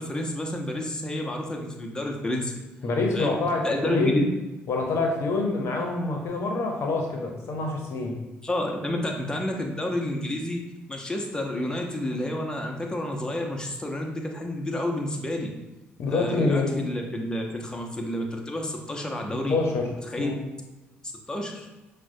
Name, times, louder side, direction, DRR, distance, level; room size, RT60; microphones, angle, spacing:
voice 1, 0.0-2.5 3.1-3.4 3.6-4.3 8.4-10.6 10.9-15.5 16.1-19.6 20.1-20.3 21.3-21.7, left 1 dB, 15° left, 1 dB, 0.7 m, -29 dB
voice 2, 2.8-4.2 4.7-8.2 16.0-16.8 19.5-19.9 20.2-20.4, left 3 dB, 60° left, 2 dB, 0.7 m, -26 dB
5.9 x 2.2 x 2.6 m, 1.1 s
hypercardioid pair, 55°, 5 cm